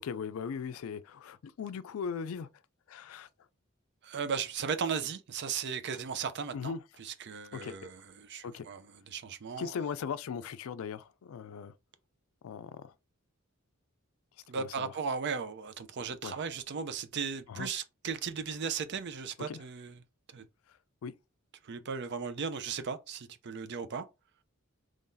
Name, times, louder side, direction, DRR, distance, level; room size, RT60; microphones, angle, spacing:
voice 1, 0.0-2.5 2.9-3.3 6.5-6.8 7.5-7.8 8.4-8.7 9.6-11.7 12.4-12.9 14.5-14.9 16.2-16.4 17.5-17.7 19.5-19.6 20.7-20.8 21.0-21.1, left 6 dB, 75° left, 0.4 m, -38 dB
voice 2, 4.0-6.7 7.0-9.7 14.5-20.0 20.3-20.5 21.6-24.0, right 6 dB, 55° right, 0.5 m, -36 dB
3.8 x 3.2 x 2.6 m
head